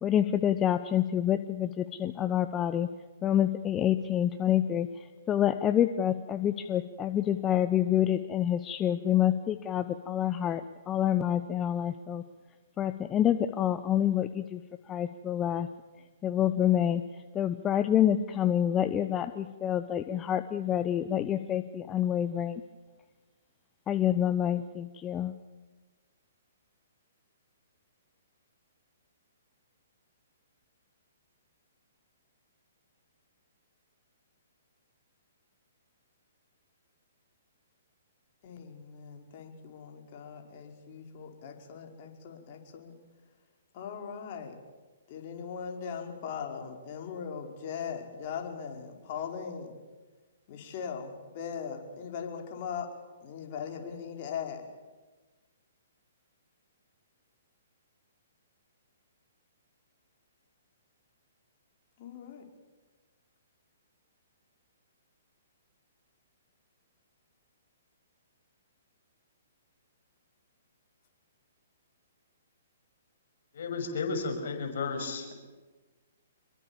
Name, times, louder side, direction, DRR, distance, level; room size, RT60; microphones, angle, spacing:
voice 1, 0.0-2.9 3.2-12.2 12.8-14.6 14.9-15.7 16.2-17.0 17.3-22.6 23.9-25.3, left 10 dB, 20° left, 11 dB, 1.0 m, -27 dB
voice 2, 38.4-42.9 43.7-44.5 45.1-49.7 50.5-52.9 53.2-54.6 62.0-62.4, left 7 dB, 45° left, 3 dB, 5.2 m, -39 dB
voice 3, 73.5-75.3, left 4 dB, 60° left, 5 dB, 6.4 m, -33 dB
27.0 x 23.0 x 7.4 m, 1.3 s
figure-of-eight pair, 125°, 0 cm